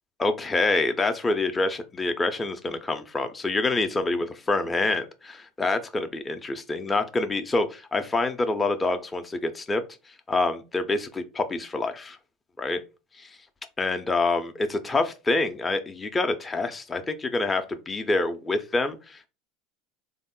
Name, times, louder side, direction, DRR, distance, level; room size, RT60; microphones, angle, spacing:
voice 1, 0.2-9.8 10.3-12.2 12.6-12.8 13.2-13.3 13.8-19.3, left 2 dB, 20° left, 0.5 m, -26 dB
3.5 x 2.1 x 3.7 m
supercardioid pair, 95°, 0 cm